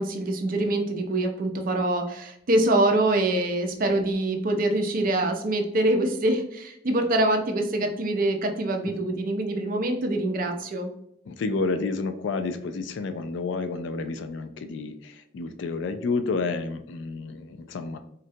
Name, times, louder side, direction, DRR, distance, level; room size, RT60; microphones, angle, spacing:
voice 1, 0.0-10.9, right 1 dB, 50° right, 4 dB, 0.5 m, -25 dB
voice 2, 11.3-18.0, left 3 dB, 70° left, 8 dB, 0.3 m, -30 dB
3.8 x 2.2 x 2.7 m, 0.75 s
head